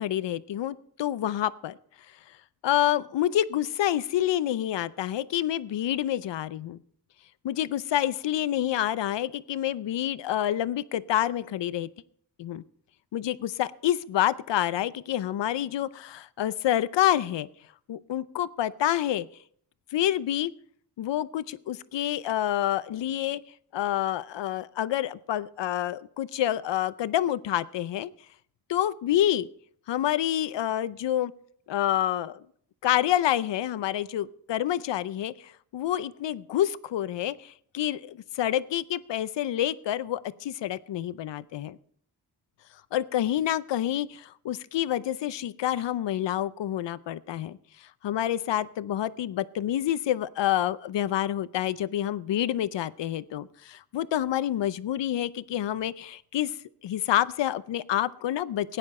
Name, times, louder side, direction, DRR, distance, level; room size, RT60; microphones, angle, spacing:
voice 1, 0.0-1.8 2.6-6.8 7.4-11.9 12.4-12.6 13.1-17.5 17.9-19.3 19.9-20.5 21.0-23.4 23.7-28.1 28.7-29.5 29.9-31.3 31.7-32.4 32.8-35.3 35.7-41.8 42.9-47.6 48.0-56.5 56.8-58.8, left 12 dB, 80° left, 17 dB, 0.6 m, -28 dB
17.0 x 9.7 x 4.2 m, 0.63 s
cardioid pair, 85°, 42 cm